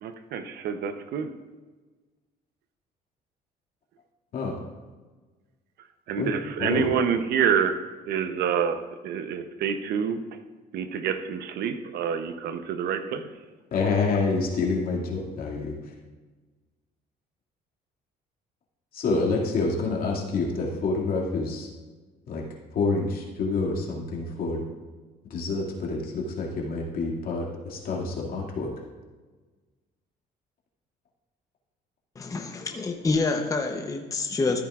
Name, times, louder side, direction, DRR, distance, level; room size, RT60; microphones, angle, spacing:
voice 1, 0.0-1.3 6.1-7.8 8.1-10.2 10.7-13.3, right 7 dB, 70° right, 9 dB, 0.8 m, -27 dB
voice 2, 6.2-6.9 13.7-15.9 18.9-21.7 22.3-22.4 22.7-24.7 25.3-28.7, left 3 dB, 60° left, -2 dB, 2.3 m, -27 dB
voice 3, 32.2-34.6, left 3 dB, 20° left, 3 dB, 0.8 m, -27 dB
14.0 x 8.8 x 2.5 m, 1.3 s
cardioid pair, 110°, 17 cm